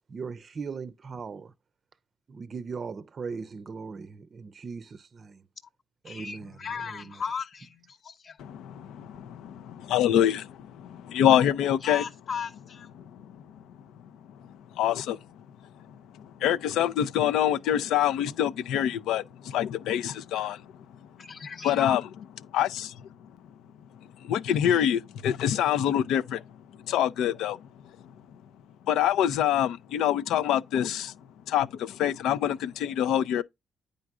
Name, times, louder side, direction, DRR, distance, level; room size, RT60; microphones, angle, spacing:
voice 1, 0.1-1.5 2.3-5.4 6.0-7.2, right 5 dB, 45° right, 0.5 m, -39 dB
voice 2, 6.0-8.4 11.8-12.9 21.2-22.0, left 6 dB, 60° left, 0.8 m, -36 dB
voice 3, 8.4-12.0 14.8-15.2 16.4-20.6 21.6-22.0 22.5-22.9 24.2-26.4 26.9-27.6 28.9-31.1 31.5-33.4, left 10 dB, 85° left, 0.5 m, -25 dB
9.4 x 5.0 x 2.4 m
cardioid pair, 90°, 0 cm